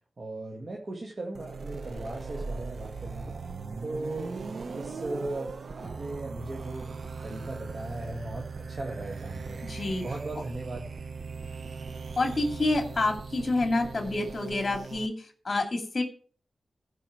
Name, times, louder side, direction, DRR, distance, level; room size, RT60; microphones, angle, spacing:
voice 1, 0.2-3.4 3.8-4.4 4.7-6.9 7.2-9.6 10.0-10.9, right 2 dB, 50° right, -1 dB, 2.1 m, -37 dB
sound 1, 1.3-15.1, right 4 dB, 65° right, 0.8 m, -39 dB
voice 2, 9.6-10.0 12.2-16.0, left 2 dB, 45° left, 4 dB, 2.3 m, -28 dB
15.0 x 5.4 x 4.6 m, 0.43 s
cardioid pair, 55°, 0 cm